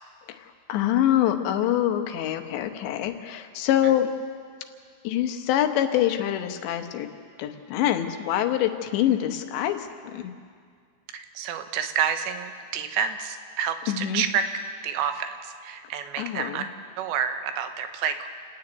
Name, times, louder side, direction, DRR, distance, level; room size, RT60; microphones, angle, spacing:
voice 1, 0.3-4.1 5.0-7.1 7.4-10.3 13.9-14.2 16.2-16.7, left 11 dB, 90° left, 7 dB, 3.3 m, -25 dB
voice 2, 11.1-14.5 14.8-16.6 17.0-18.3, right 7 dB, 85° right, 7 dB, 3.3 m, -29 dB
29.0 x 9.8 x 9.3 m, 2.1 s
omnidirectional pair, 4.9 m